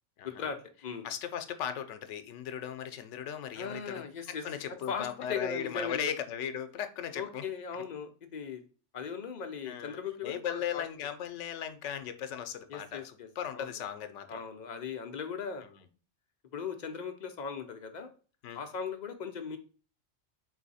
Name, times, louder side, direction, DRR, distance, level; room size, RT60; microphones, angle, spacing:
voice 1, 0.2-1.1 3.6-6.1 7.2-8.6 8.9-10.9 12.7-13.8 14.3-15.6 16.5-18.1 18.5-19.6, left 6 dB, 55° left, 6 dB, 0.5 m, -38 dB
voice 2, 1.0-7.5 9.7-14.4 18.4-18.6, left 9 dB, 80° left, 9 dB, 0.9 m, -37 dB
3.9 x 2.7 x 4.1 m, 0.37 s
omnidirectional pair, 1.2 m